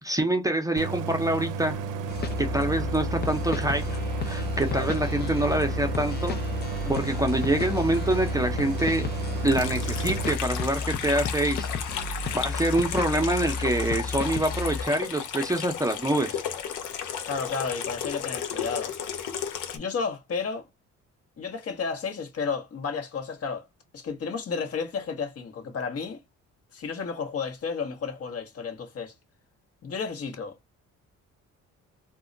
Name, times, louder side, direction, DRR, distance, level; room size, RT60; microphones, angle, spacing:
voice 1, 0.0-1.8 2.4-3.8 4.2-6.4 6.9-9.1 9.4-11.7 12.3-16.4, right 1 dB, 10° right, 0.6 m, -26 dB
Idling, 0.8-10.3, right 5 dB, 85° right, 0.5 m, -33 dB
sound 1, 2.1-14.9, left 4 dB, 35° left, 0.4 m, -32 dB
Water tap faucet / Sink (filling or washing), 9.4-19.8, left 8 dB, 75° left, 0.7 m, -34 dB
voice 2, 17.3-18.9 19.7-20.7 21.4-23.6 23.9-26.2 26.7-29.1 29.8-30.6, left 5 dB, 50° left, 0.9 m, -32 dB
2.2 x 2.1 x 3.7 m
cardioid pair, 90°, 30 cm